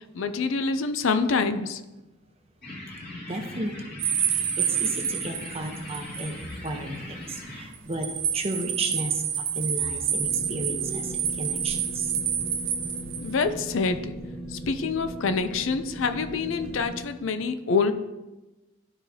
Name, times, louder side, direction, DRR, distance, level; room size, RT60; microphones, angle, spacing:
voice 1, 0.1-1.8 13.2-14.1 14.5-17.9, left 4 dB, 65° left, 10 dB, 0.5 m, -26 dB
sound 1, 2.6-7.6, left 1 dB, 50° left, 2.1 m, -40 dB
voice 2, 3.3-4.0 4.3-12.1, right 2 dB, 30° right, 4 dB, 0.9 m, -34 dB
sound 2, 4.0-6.4 6.7-6.8 7.7-13.4, right 8 dB, 60° right, 0.7 m, -28 dB
sound 3, 10.1-17.0, right 1 dB, 5° left, 1.2 m, -38 dB
12.5 x 4.8 x 2.8 m, 1.1 s
head